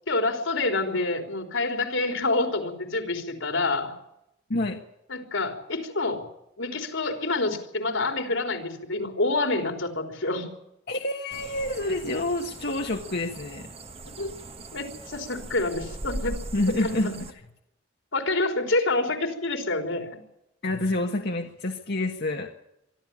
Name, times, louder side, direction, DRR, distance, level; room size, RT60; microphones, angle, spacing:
voice 1, 0.1-3.9 5.1-6.2 6.6-10.5 14.2-14.3 14.7-16.4 16.8-17.2 18.1-20.2, left 2 dB, 80° left, 5 dB, 3.7 m, -27 dB
voice 2, 10.9-13.7 16.5-17.1 20.6-22.5, left 2 dB, 55° left, 2 dB, 1.5 m, -28 dB
sound 1, 11.3-17.3, right 2 dB, 30° right, 1.3 m, -40 dB
24.0 x 13.0 x 8.8 m, 0.83 s
head